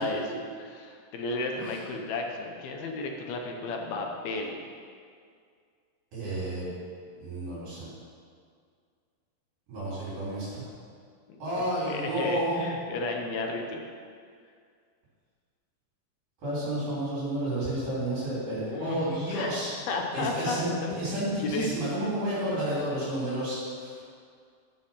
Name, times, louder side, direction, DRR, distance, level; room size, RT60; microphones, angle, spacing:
voice 1, 0.0-4.6 11.6-13.8 18.7-19.6 19.9-21.7 22.0-22.1, left 3 dB, 70° left, 2 dB, 2.6 m, -33 dB
voice 2, 6.1-6.7 7.2-7.9 9.7-10.6 11.4-12.6 16.4-19.7 20.1-20.7 20.9-24.0, right 1 dB, 55° right, -9 dB, 4.9 m, -31 dB
13.0 x 6.3 x 5.7 m, 2.1 s
omnidirectional pair, 5.0 m